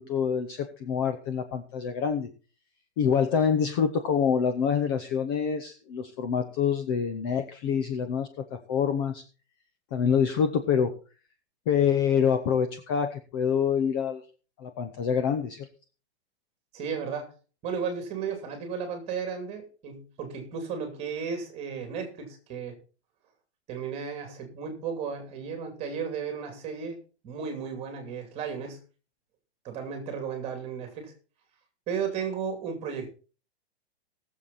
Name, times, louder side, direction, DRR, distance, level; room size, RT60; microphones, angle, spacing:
voice 1, 0.0-2.3 3.0-9.2 9.9-10.9 11.7-14.2 14.6-15.7, left 7 dB, 20° left, 8 dB, 0.7 m, -26 dB
voice 2, 16.7-17.3 17.6-22.7 23.7-27.0 27.2-28.8 29.6-31.1 31.9-33.1, right 6 dB, 20° right, 5 dB, 2.6 m, -34 dB
18.5 x 7.3 x 4.1 m, 0.36 s
hypercardioid pair, 170°, 33 cm